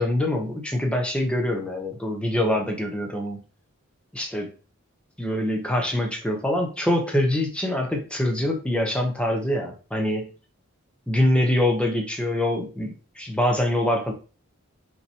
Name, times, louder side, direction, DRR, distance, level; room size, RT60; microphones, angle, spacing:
voice 1, 0.0-3.4 4.1-4.5 5.2-10.3 11.1-14.1, left 1 dB, 5° left, 2 dB, 0.8 m, -24 dB
5.6 x 3.0 x 2.8 m, 0.35 s
head